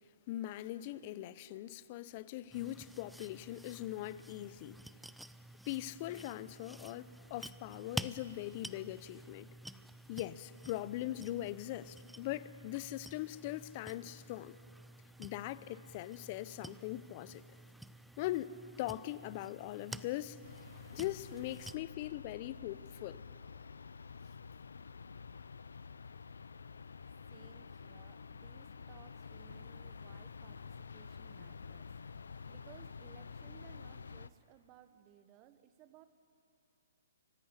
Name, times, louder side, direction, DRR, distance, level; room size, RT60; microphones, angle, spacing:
voice 1, 0.3-4.8 5.7-9.5 10.1-14.6 15.2-17.4 18.2-20.4 20.9-23.2, left 15 dB, 40° left, 0.6 m, -41 dB
sound 1, 2.5-21.8, right 1 dB, ahead, 0.4 m, -50 dB
sound 2, 20.4-34.3, left 5 dB, 80° left, 0.5 m, -49 dB
voice 2, 27.3-31.9 32.5-36.0, right 11 dB, 30° right, 1.1 m, -61 dB
24.5 x 11.0 x 9.8 m
hypercardioid pair, 140°, 0 cm